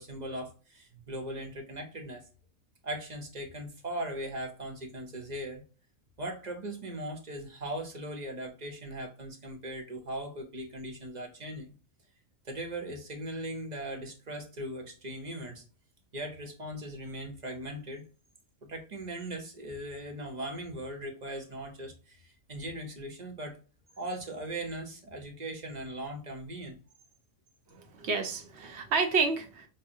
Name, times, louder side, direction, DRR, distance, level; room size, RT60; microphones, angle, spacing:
voice 1, 0.0-2.3 2.8-5.6 6.2-11.7 12.4-15.6 16.1-18.0 18.6-23.6 24.0-26.8, right 1 dB, 40° right, 3 dB, 0.9 m, -39 dB
voice 2, 27.7-29.7, right 4 dB, 65° right, 5 dB, 1.0 m, -30 dB
5.4 x 2.1 x 2.6 m, 0.35 s
omnidirectional pair, 1.3 m